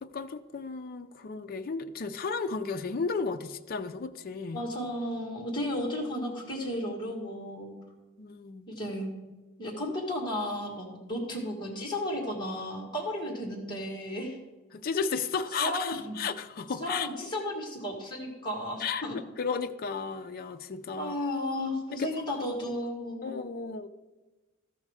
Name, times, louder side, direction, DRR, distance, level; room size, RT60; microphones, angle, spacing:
voice 1, 0.0-4.7 8.2-8.7 14.7-17.1 18.8-21.2 22.0-22.1 22.4-22.8 23.2-23.9, left 5 dB, 45° left, 8 dB, 0.4 m, -34 dB
voice 2, 4.5-7.7 8.7-9.1 9.6-14.4 15.6-16.2 16.8-19.2 21.0-23.3, left 1 dB, 20° left, -2 dB, 1.8 m, -34 dB
13.5 x 5.4 x 4.9 m, 1.2 s
head